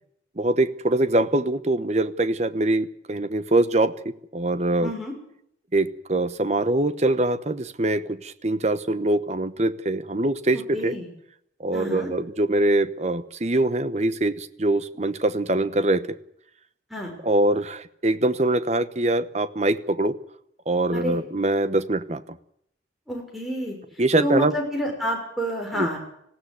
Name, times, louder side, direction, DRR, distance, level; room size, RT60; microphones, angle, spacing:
voice 1, 0.4-3.9 4.3-4.9 5.7-10.9 11.6-16.1 17.2-20.2 20.7-22.2 24.0-24.5 25.8-25.9, right 2 dB, 35° right, 13 dB, 1.0 m, -23 dB
voice 2, 4.8-5.1 10.7-11.1 11.7-12.1 16.9-17.1 20.9-21.2 23.1-23.8 24.2-26.0, equal, ahead, 1 dB, 6.1 m, -29 dB
19.5 x 16.0 x 9.6 m, 0.72 s
head